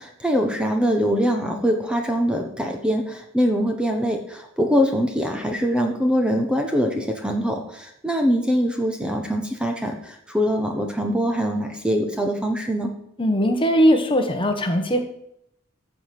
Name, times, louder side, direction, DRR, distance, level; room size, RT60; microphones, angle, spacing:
voice 1, 0.0-12.9, equal, 5° right, 3 dB, 1.1 m, -23 dB
voice 2, 13.2-15.0, equal, 25° left, 5 dB, 1.2 m, -19 dB
14.5 x 5.0 x 6.0 m, 0.74 s
head